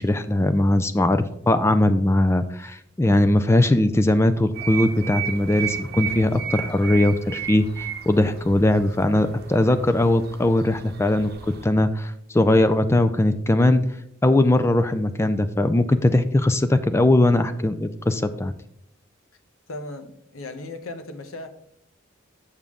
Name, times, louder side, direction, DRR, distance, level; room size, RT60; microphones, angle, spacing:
voice 1, 0.0-11.3 11.6-13.8 14.2-18.5, left 1 dB, 15° left, 10 dB, 0.3 m, -20 dB
sound 1, 4.5-11.7, right 8 dB, 50° right, 0.9 m, -34 dB
voice 2, 19.7-21.5, left 2 dB, 85° left, 7 dB, 0.9 m, -36 dB
7.2 x 6.7 x 3.6 m, 0.74 s
head